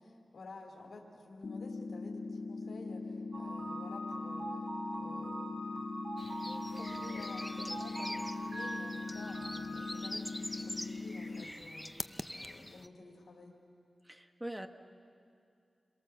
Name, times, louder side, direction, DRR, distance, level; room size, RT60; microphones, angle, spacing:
voice 1, 0.0-4.7 4.9-5.9 6.3-12.1 12.3-13.6, left 3 dB, 90° left, -1 dB, 2.7 m, -52 dB
sound 1, 1.4-11.4, left 3 dB, 70° left, 0.9 m, -41 dB
sound 2, 3.3-9.8, right 1 dB, 40° right, 3.8 m, -43 dB
sound 3, 6.2-12.9, left 1 dB, 5° left, 0.5 m, -45 dB
voice 2, 14.1-14.7, right 1 dB, 10° right, 6 dB, 1.2 m, -42 dB
28.0 x 22.5 x 7.2 m, 2.4 s
wide cardioid pair, 115°, 0 cm